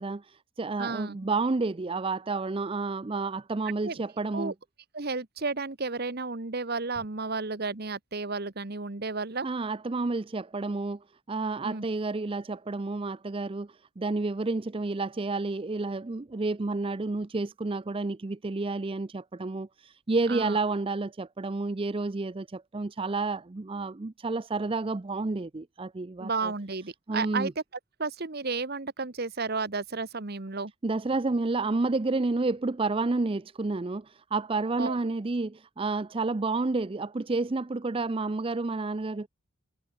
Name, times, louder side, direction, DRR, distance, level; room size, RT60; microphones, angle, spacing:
voice 1, 0.0-4.5 9.4-26.5 27.1-27.5 30.8-39.3, right 3 dB, 25° right, 0.5 m, -30 dB
voice 2, 0.8-1.2 3.8-4.0 4.3-4.5 4.9-9.5 11.6-11.8 20.3-20.6 26.2-27.5 28.0-30.7 34.8-35.0, right 4 dB, 50° right, 1.3 m, -32 dB
head